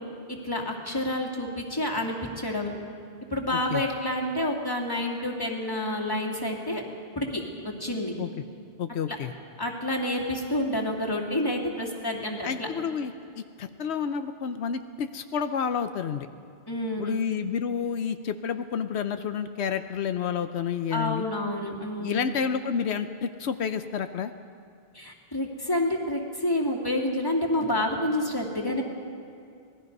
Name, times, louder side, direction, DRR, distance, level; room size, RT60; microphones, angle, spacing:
voice 1, 0.3-2.7 3.3-6.8 7.2-8.1 9.6-12.7 16.7-17.2 20.9-22.3 24.9-28.8, left 1 dB, 20° left, 0 dB, 2.6 m, -29 dB
voice 2, 3.5-3.8 8.2-8.3 8.8-9.3 12.4-16.3 17.0-21.3 22.0-24.3, left 7 dB, 85° left, 9 dB, 1.0 m, -30 dB
26.0 x 19.5 x 5.4 m, 2.3 s
omnidirectional pair, 1.1 m